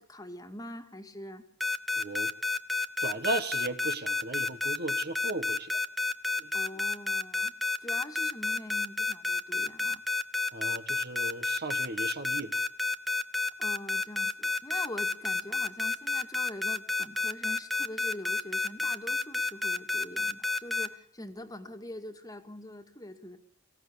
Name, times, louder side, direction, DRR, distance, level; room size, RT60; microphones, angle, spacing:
voice 1, 0.0-1.5 6.5-7.5 7.8-10.0 13.6-23.4, left 1 dB, 15° left, 6 dB, 2.0 m, -44 dB
sound 1, 1.6-20.9, left 3 dB, ahead, 0.9 m, -29 dB
voice 2, 1.9-2.3 3.0-5.8 6.4-6.5 10.5-12.6, right 2 dB, 50° right, 9 dB, 1.6 m, -36 dB
24.5 x 16.0 x 8.6 m, 0.68 s
head